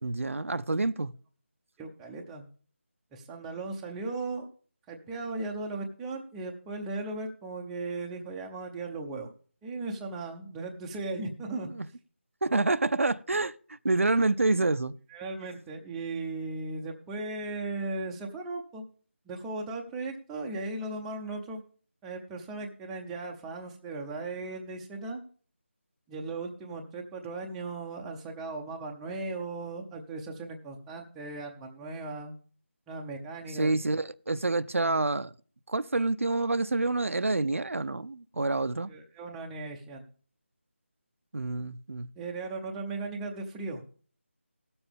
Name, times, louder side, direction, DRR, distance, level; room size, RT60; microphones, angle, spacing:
voice 1, 0.0-1.1 11.8-11.9 12.4-13.5 13.8-14.9 33.6-35.3 35.7-38.9 41.3-42.1, right 2 dB, 85° right, 0.7 m, -27 dB
voice 2, 1.8-2.5 3.1-4.5 4.9-9.3 9.6-11.7 15.1-18.8 19.3-21.6 22.0-25.2 26.1-32.3 32.9-33.7 38.9-40.0 42.2-43.8, right 3 dB, 5° right, 0.6 m, -37 dB
17.5 x 7.0 x 3.4 m
figure-of-eight pair, 170°, 7 cm